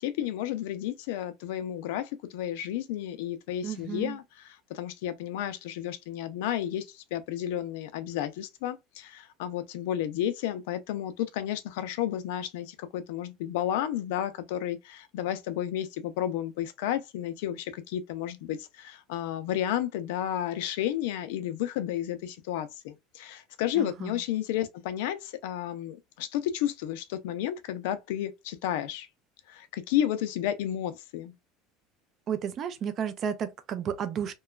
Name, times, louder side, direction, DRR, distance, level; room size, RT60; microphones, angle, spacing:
voice 1, 0.0-29.1 29.5-31.3, left 11 dB, 70° left, 0.5 m, -32 dB
voice 2, 3.6-4.2 23.8-24.2 32.3-34.3, right 8 dB, 30° right, 0.4 m, -32 dB
2.9 x 2.3 x 2.3 m
cardioid pair, 175°, 0 cm